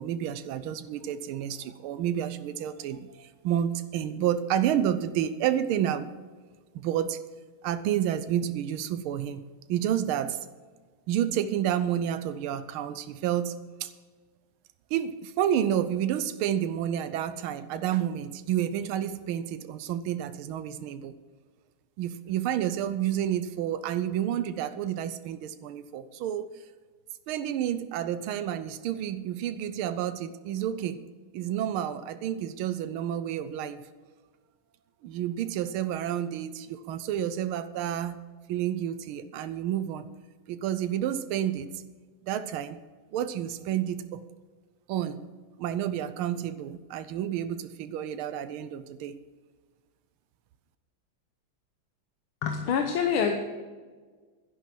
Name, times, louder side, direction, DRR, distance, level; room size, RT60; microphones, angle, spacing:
voice 1, 0.0-6.1 6.7-7.2 7.6-9.4 9.7-10.4 11.1-13.9 14.9-21.1 22.0-26.5 27.3-31.0 31.3-33.8 35.0-38.2 38.5-40.1 40.5-41.8 42.2-42.8 43.1-44.2 44.9-45.2 45.6-49.2, right 10 dB, 90° right, 12 dB, 1.5 m, -30 dB
voice 2, 52.4-53.4, left 6 dB, 80° left, 5 dB, 1.8 m, -26 dB
11.5 x 11.0 x 6.0 m, 1.4 s
omnidirectional pair, 2.2 m